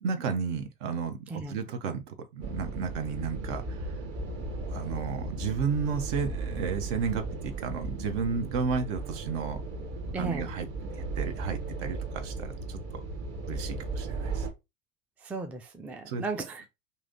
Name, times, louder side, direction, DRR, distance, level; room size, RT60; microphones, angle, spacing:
voice 1, 0.0-3.9 4.7-9.6 10.1-13.0 13.5-14.5 16.1-16.2, right 5 dB, 60° right, 0.9 m, -33 dB
sound 1, 2.4-14.5, right 3 dB, 35° right, 1.0 m, -36 dB
voice 2, 10.1-10.5 15.2-16.7, right 3 dB, 5° right, 0.4 m, -35 dB
3.1 x 2.7 x 3.8 m
hypercardioid pair, 75°, 42 cm